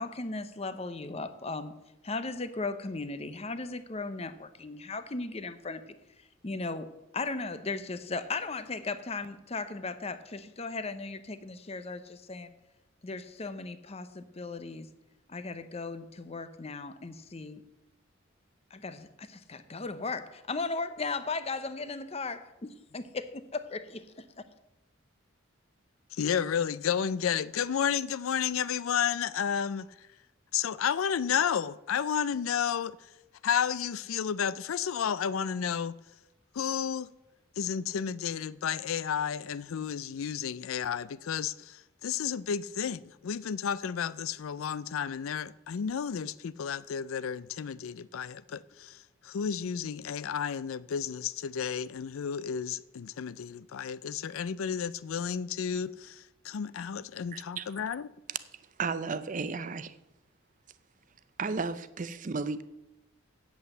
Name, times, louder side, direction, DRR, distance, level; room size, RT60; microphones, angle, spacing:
voice 1, 0.0-1.7 2.0-5.9 6.4-12.5 13.0-14.9 15.3-17.6 18.7-24.0, left 3 dB, 30° left, 0.7 m, -37 dB
voice 2, 26.1-29.9 30.5-33.0 33.4-35.9 36.5-37.1 37.6-58.1, left 7 dB, 85° left, 0.4 m, -32 dB
voice 3, 57.3-57.7 58.3-58.4 58.8-60.0 61.4-62.6, right 4 dB, 40° right, 0.5 m, -33 dB
8.3 x 8.0 x 7.7 m
head